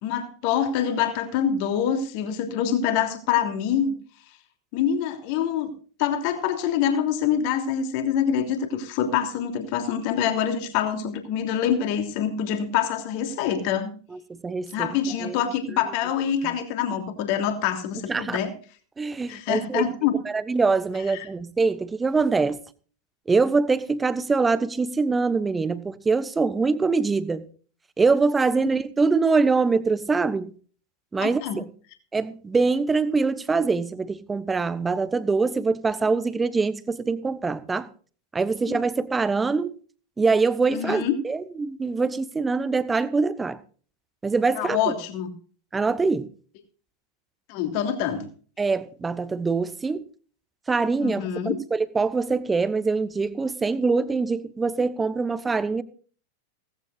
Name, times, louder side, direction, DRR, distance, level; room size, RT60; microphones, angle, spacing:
voice 1, 0.0-4.0 4.7-5.7 6.0-13.9 14.7-18.5 19.3-20.2 31.2-31.6 38.7-38.8 40.7-41.1 44.6-45.3 47.5-48.3 51.0-51.6, left 8 dB, 45° left, 3.0 m, -25 dB
voice 2, 14.1-15.4 16.4-16.5 18.1-18.4 19.0-19.9 20.2-22.6 23.3-27.5 28.0-30.5 31.1-31.7 32.1-37.9 38.3-39.8 40.2-43.6 44.2-44.9 45.7-46.3 48.6-50.0 50.7-55.8, right 4 dB, 15° right, 1.2 m, -24 dB
18.0 x 15.5 x 2.5 m
figure-of-eight pair, 90°, 0 cm